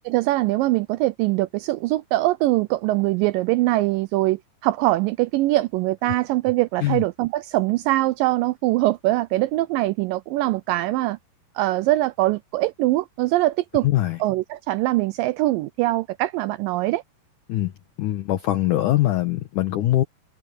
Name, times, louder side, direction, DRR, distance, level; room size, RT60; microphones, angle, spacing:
voice 1, 0.1-11.2 11.6-13.9 14.2-17.0, right 17 dB, 85° right, 1.9 m, -22 dB
voice 2, 13.8-14.2 17.5-17.7 18.0-20.0, left 14 dB, 70° left, 2.2 m, -22 dB
omnidirectional pair, 4.5 m